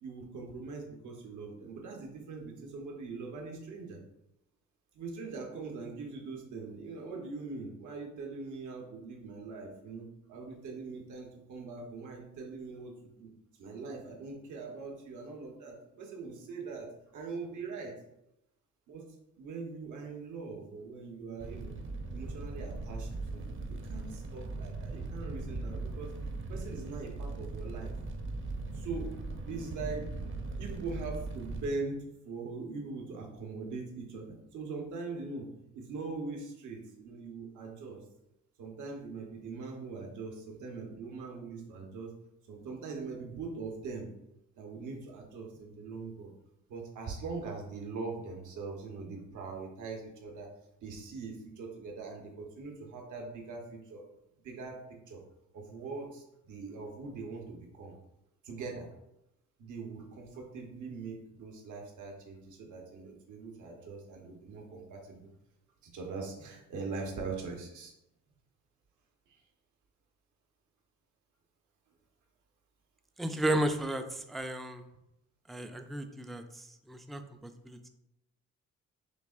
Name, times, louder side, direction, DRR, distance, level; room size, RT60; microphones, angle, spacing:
voice 1, 0.0-4.0 4.9-13.3 13.6-17.9 18.9-19.1 19.4-21.8 22.1-26.1 26.5-27.9 28.7-29.2 29.5-30.1 30.6-35.5 35.7-38.0 38.6-42.1 42.5-44.1 44.6-46.3 46.7-50.5 50.8-54.0 54.4-54.8 55.1-55.2 55.5-57.9 58.4-58.9 59.6-65.3 65.8-67.9 69.3-69.4, right 4 dB, 75° right, 1 dB, 1.1 m, -42 dB
Fire, 21.4-31.7, right 3 dB, 40° right, 0.8 m, -39 dB
voice 2, 73.2-74.8 75.5-77.9, right 1 dB, ahead, 7 dB, 0.3 m, -34 dB
6.6 x 2.8 x 2.5 m, 0.84 s
cardioid pair, 90°, 30 cm